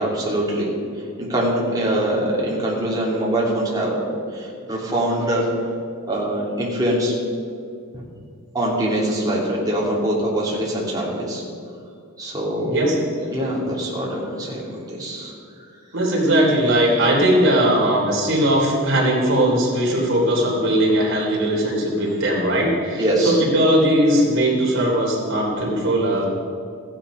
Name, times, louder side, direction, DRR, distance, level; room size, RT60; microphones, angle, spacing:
voice 1, 0.0-4.0 4.3-5.5 6.1-7.1 8.5-11.4 12.2-12.8 13.3-15.3 23.0-23.4, right 1 dB, 15° right, -5 dB, 2.9 m, -23 dB
voice 2, 12.6-13.6 15.9-26.3, right 1 dB, 60° right, -3 dB, 3.3 m, -19 dB
14.5 x 10.0 x 5.1 m, 2.3 s
head